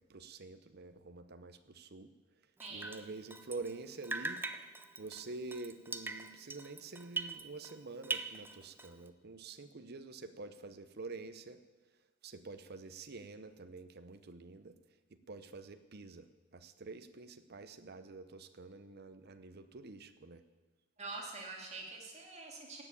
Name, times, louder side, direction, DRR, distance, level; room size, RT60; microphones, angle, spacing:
voice 1, 0.1-2.1 2.7-4.4 5.0-11.6 12.2-14.7 15.3-20.4, right 3 dB, 55° right, 10 dB, 0.8 m, -47 dB
Drip, 2.6-3.8 4.0-7.8 8.0-9.1, right 3 dB, 10° right, 0.6 m, -42 dB
voice 2, 2.6-2.9 21.0-22.8, right 3 dB, 35° right, -1 dB, 2.7 m, -45 dB
17.5 x 6.9 x 8.6 m, 1.2 s
head